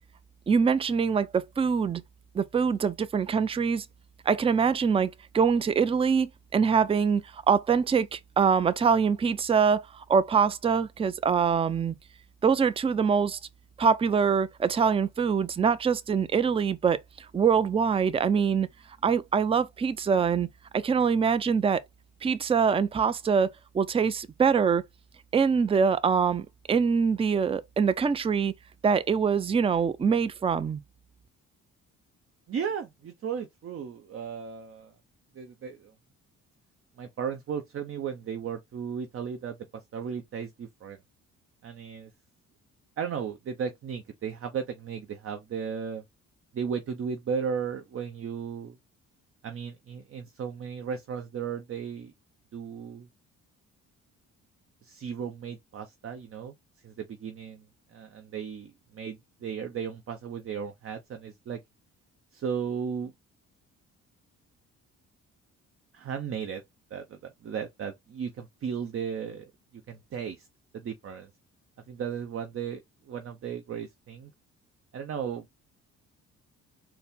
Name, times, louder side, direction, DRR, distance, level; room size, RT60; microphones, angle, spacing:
voice 1, 0.5-2.0 2.3-3.8 4.3-12.0 12.4-13.4 13.8-17.0 17.3-18.7 19.0-20.5 20.7-21.8 22.2-24.8 25.3-28.5 28.8-30.8, right 6 dB, 20° right, 0.4 m, -24 dB
voice 2, 32.5-34.9 35.3-35.9 37.0-41.0 41.6-42.1 43.0-46.0 46.5-48.8 49.4-52.1 52.5-53.1 54.8-56.5 56.8-57.6 57.9-61.6 62.3-63.1 65.9-66.6 66.9-70.5 70.7-71.3 71.9-72.8 73.1-74.3 74.9-75.5, right 7 dB, 45° right, 0.7 m, -35 dB
4.2 x 2.1 x 3.6 m
cardioid pair, 90°, 30 cm